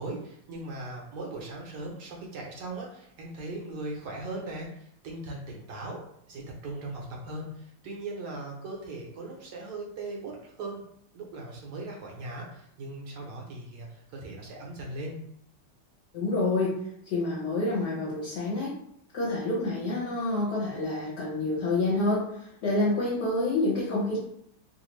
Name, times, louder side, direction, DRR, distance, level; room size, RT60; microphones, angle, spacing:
voice 1, 0.0-6.0 6.3-10.8 11.1-15.1, right 2 dB, 70° right, -1 dB, 1.1 m, -39 dB
voice 2, 16.1-16.8 17.1-18.8 19.1-24.2, left 2 dB, 60° left, -7 dB, 1.2 m, -28 dB
3.2 x 2.4 x 3.0 m, 0.70 s
omnidirectional pair, 2.3 m